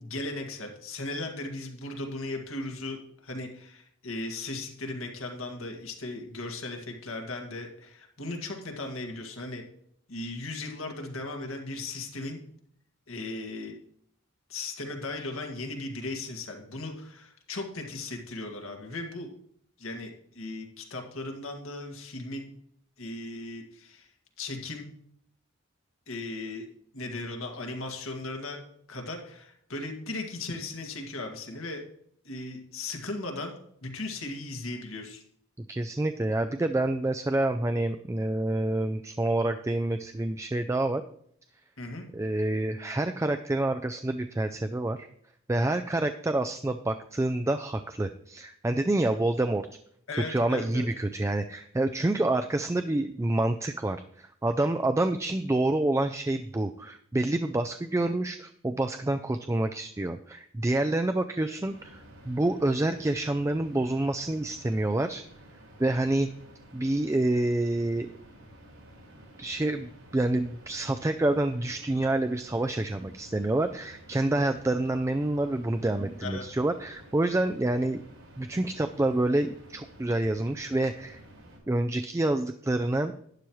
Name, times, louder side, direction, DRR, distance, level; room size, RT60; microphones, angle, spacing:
voice 1, 0.0-9.6 10.1-12.4 13.1-13.8 14.5-19.3 19.8-22.5 23.0-24.1 24.4-24.9 26.1-26.7 26.9-28.6 28.9-31.8 32.3-33.5 33.8-35.2 41.8-42.1 50.1-50.9 76.2-76.5, left 2 dB, 85° left, 3 dB, 1.9 m, -37 dB
voice 2, 35.6-41.0 42.1-45.1 45.5-49.7 50.3-65.2 65.8-66.3 66.7-68.1 69.4-78.0 78.4-81.2 81.7-83.1, right 2 dB, 15° right, 7 dB, 0.3 m, -27 dB
sound 1, 61.6-81.6, right 1 dB, 85° right, 5.0 m, -52 dB
11.5 x 10.0 x 3.1 m, 0.69 s
head